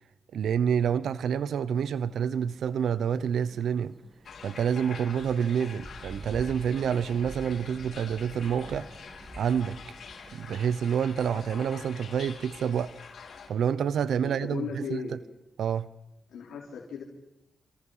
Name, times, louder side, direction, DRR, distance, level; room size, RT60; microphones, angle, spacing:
voice 1, 0.3-3.9 4.4-8.9 9.4-9.8 10.3-12.9 13.5-15.1 15.6-15.9, right 8 dB, 80° right, 0.9 m, -28 dB
sound 1, 1.7-11.7, right 2 dB, 20° right, 1.5 m, -48 dB
sound 2, 4.2-13.5, left 5 dB, 70° left, 5.9 m, -46 dB
voice 2, 14.2-15.2 16.3-17.0, left 6 dB, 90° left, 4.1 m, -37 dB
29.0 x 28.5 x 5.7 m
cardioid pair, 60°, 0 cm